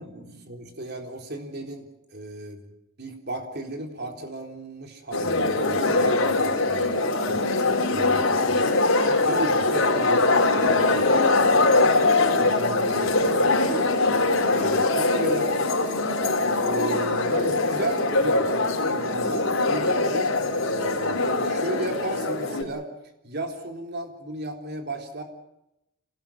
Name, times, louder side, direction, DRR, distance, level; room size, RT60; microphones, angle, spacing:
voice 1, 0.0-1.9 2.1-2.7 3.0-7.4 7.9-8.8 9.2-11.3 12.4-13.9 14.5-15.7 16.5-18.5 18.8-22.9 23.2-25.2, right 1 dB, 50° right, 4 dB, 3.9 m, -35 dB
sound 1, 5.1-22.6, left 2 dB, 85° left, 4.3 m, -22 dB
27.0 x 18.5 x 7.3 m, 0.86 s
head